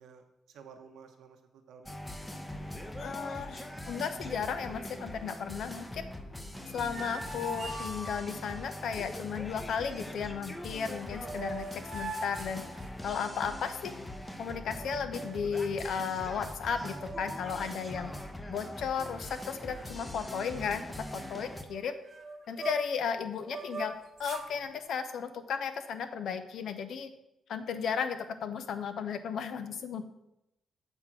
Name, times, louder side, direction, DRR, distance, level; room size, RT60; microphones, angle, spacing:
voice 1, 0.0-2.0 29.5-30.0, right 6 dB, 85° right, 5 dB, 0.9 m, -54 dB
sound 1, 1.8-21.6, left 1 dB, 10° left, 0.7 m, -42 dB
voice 2, 3.0-6.0 6.7-12.6 13.0-13.9 14.4-18.1 18.5-20.8 21.1-21.9 22.5-27.1 27.5-30.0, left 6 dB, 75° left, 10 dB, 0.6 m, -35 dB
sound 2, 6.6-8.6 10.8-10.9 11.1-13.4 14.7-15.5 16.1-16.2 16.4-17.6 17.9-18.2 18.8-19.4 19.7-19.9 20.1-23.0 23.4-24.5, right 2 dB, 45° right, 0.9 m, -42 dB
7.7 x 3.6 x 5.9 m, 0.86 s
cardioid pair, 95°, 0 cm